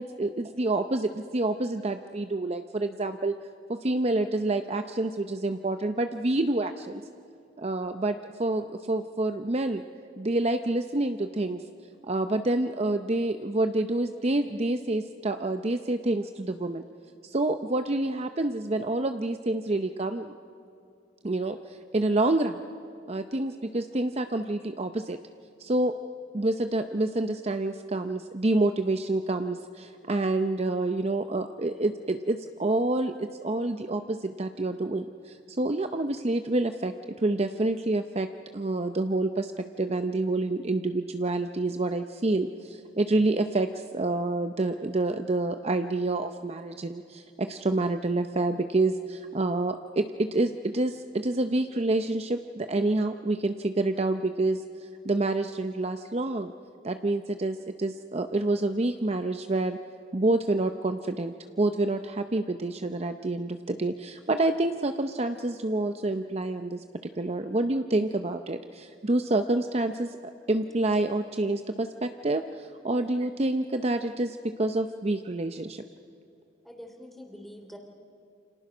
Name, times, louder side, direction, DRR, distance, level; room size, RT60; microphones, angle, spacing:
voice 1, 0.0-3.3 3.7-7.0 7.6-9.8 10.2-11.6 12.0-16.8 17.2-20.3 21.2-22.6 23.1-25.2 25.6-26.0 26.3-36.9 37.2-38.3 38.5-56.5 56.8-59.8 60.1-70.2 70.5-75.8, right 2 dB, 35° right, 8 dB, 0.7 m, -28 dB
voice 2, 76.6-77.8, equal, ahead, 3 dB, 2.8 m, -45 dB
29.0 x 26.5 x 6.1 m, 2.4 s
head